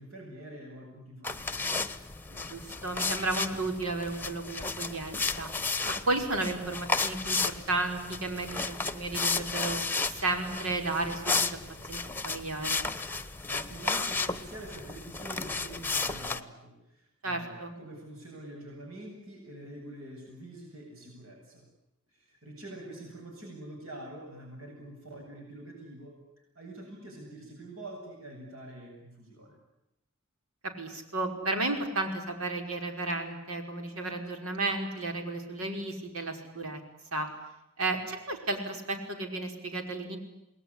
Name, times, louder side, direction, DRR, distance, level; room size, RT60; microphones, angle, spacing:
voice 1, 0.0-1.7 13.5-21.7 22.1-26.1 26.5-29.6, right 1 dB, 70° right, 1 dB, 7.9 m, -46 dB
sound 1, 1.2-16.4, left 4 dB, 10° left, 1.1 m, -33 dB
voice 2, 2.3-5.5 5.9-11.5 11.9-12.0 12.2-12.8 17.2-17.7 30.6-36.8 37.1-37.3 37.8-40.2, right 2 dB, 90° right, 5 dB, 5.5 m, -33 dB
28.5 x 20.5 x 10.0 m, 0.87 s
head